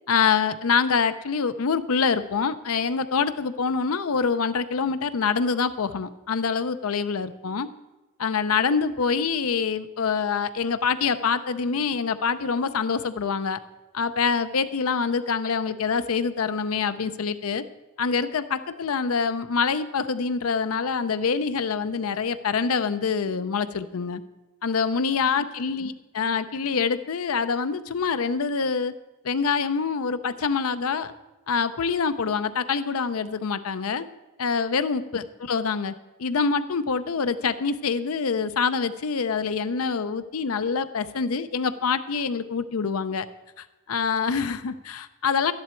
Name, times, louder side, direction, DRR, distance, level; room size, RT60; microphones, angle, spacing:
voice 1, 0.1-7.7 8.2-13.6 13.9-17.6 18.0-24.2 24.6-28.9 29.2-31.1 31.5-34.1 34.4-35.9 36.2-43.3 43.6-45.5, left 5 dB, 90° left, 12 dB, 0.6 m, -25 dB
12.0 x 10.5 x 4.4 m, 1.1 s
head